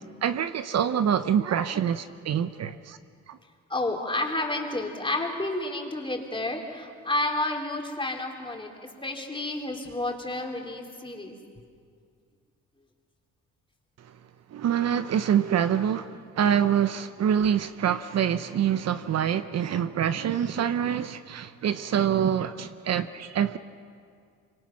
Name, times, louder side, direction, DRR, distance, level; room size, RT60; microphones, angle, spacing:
voice 1, 0.0-3.0 3.3-3.4 14.5-23.6, right 9 dB, 60° right, 0.8 m, -26 dB
voice 2, 3.7-8.7 9.0-11.4, left 2 dB, 15° left, 3.5 m, -30 dB
25.5 x 25.0 x 6.0 m
cardioid pair, 90°, 30 cm